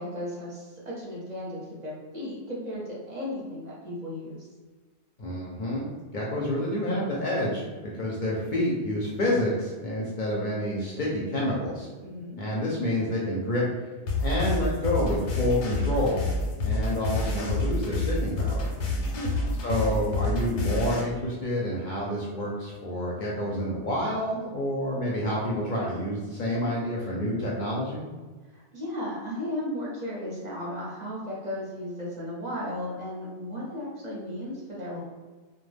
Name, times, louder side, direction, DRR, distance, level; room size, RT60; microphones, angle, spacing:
voice 1, 0.0-4.5 12.0-12.4 18.9-19.4 28.5-35.0, left 1 dB, 45° right, -6 dB, 0.7 m, -35 dB
voice 2, 5.2-7.6 8.0-11.9 12.4-13.7 14.2-16.2 16.6-18.7 19.6-28.0, left 1 dB, 55° left, -5 dB, 0.6 m, -28 dB
sound 1, 14.1-21.0, left 2 dB, 85° left, 0.9 m, -28 dB
2.2 x 2.2 x 3.2 m, 1.3 s
omnidirectional pair, 1.2 m